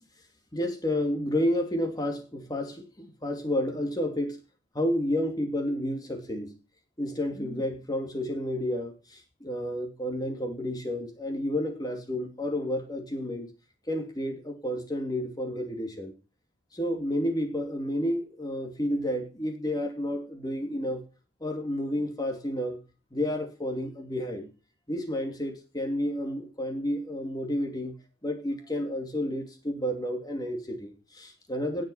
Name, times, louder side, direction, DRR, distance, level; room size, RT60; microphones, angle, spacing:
voice 1, 0.5-4.4 4.7-6.5 7.0-13.5 13.9-16.1 16.7-21.0 21.4-22.8 23.1-24.5 24.9-28.0 28.2-31.8, left 1 dB, 20° left, 4 dB, 2.7 m, -31 dB
19.0 x 6.5 x 5.7 m, 0.33 s
head